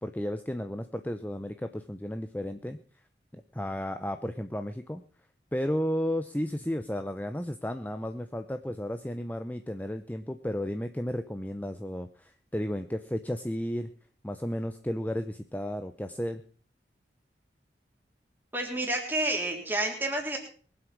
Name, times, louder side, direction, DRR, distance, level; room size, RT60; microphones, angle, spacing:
voice 1, 0.0-2.8 3.3-5.0 5.5-13.9 14.2-16.4, equal, 10° left, 9 dB, 0.7 m, -33 dB
voice 2, 18.5-20.4, right 2 dB, 10° right, 1 dB, 3.4 m, -29 dB
22.5 x 8.0 x 6.1 m, 0.43 s
head